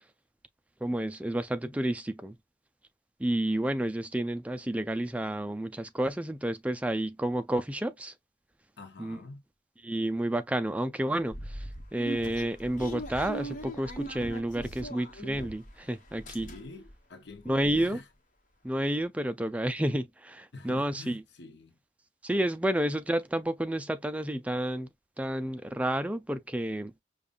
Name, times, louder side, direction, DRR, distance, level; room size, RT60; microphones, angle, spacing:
voice 1, 0.8-2.4 3.2-8.1 9.0-9.2 9.8-16.5 17.5-18.0 18.6-21.2 22.2-24.9 25.2-27.0, right 1 dB, 10° right, 0.3 m, -30 dB
voice 2, 8.8-9.4 16.4-18.0 20.5-21.7, left 2 dB, 70° left, 0.7 m, -46 dB
sound 1, 11.3-15.8 16.1-16.9 17.3-17.4 17.6-17.8, right 1 dB, 45° left, 1.0 m, -40 dB
5.1 x 2.3 x 2.4 m
head